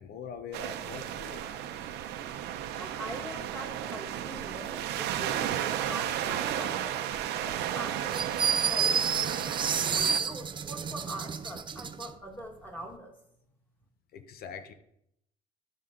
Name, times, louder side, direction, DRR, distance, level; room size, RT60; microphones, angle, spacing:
voice 1, 0.0-1.9 14.1-14.7, left 6 dB, 65° left, 9 dB, 0.9 m, -44 dB
sound 1, 0.5-10.2, right 11 dB, 85° right, 0.8 m, -33 dB
voice 2, 2.8-7.0 7.5-13.1, right 1 dB, 10° left, 1 dB, 1.8 m, -43 dB
sound 2, 8.1-12.1, right 6 dB, 30° right, 0.5 m, -29 dB
12.0 x 5.5 x 3.8 m, 0.77 s
cardioid pair, 110°, 17 cm